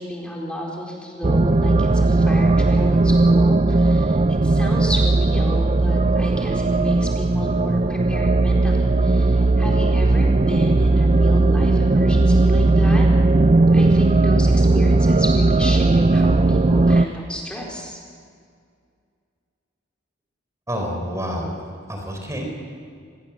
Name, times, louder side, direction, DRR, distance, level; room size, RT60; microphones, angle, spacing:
voice 1, 0.0-13.1 13.7-18.0, equal, 5° left, -2 dB, 4.3 m, -32 dB
sound 1, 1.2-17.1, right 2 dB, 35° right, 0.5 m, -17 dB
voice 2, 20.7-22.5, equal, 15° right, 2 dB, 4.2 m, -28 dB
28.0 x 21.0 x 7.3 m, 2.2 s
head